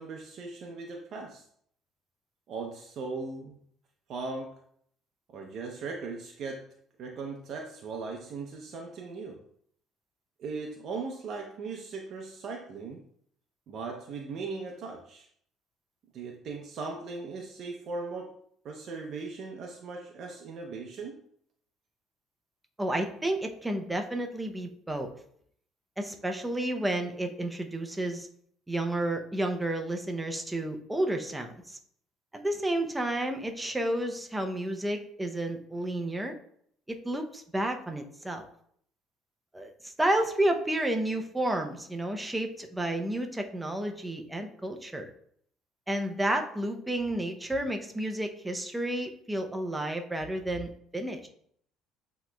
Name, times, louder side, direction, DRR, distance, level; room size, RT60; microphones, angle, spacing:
voice 1, 0.0-1.4 2.5-3.6 4.1-4.5 5.3-6.7 7.0-9.4 10.4-13.0 13.7-15.3 16.1-18.4 18.6-21.2, right 4 dB, 55° right, 1 dB, 0.6 m, -38 dB
voice 2, 22.8-25.1 26.0-28.3 28.7-31.8 32.3-36.3 36.9-38.5 39.5-45.1 45.9-51.3, right 1 dB, 10° right, 4 dB, 0.5 m, -31 dB
8.1 x 2.9 x 2.2 m, 0.65 s
cardioid pair, 115°, 0 cm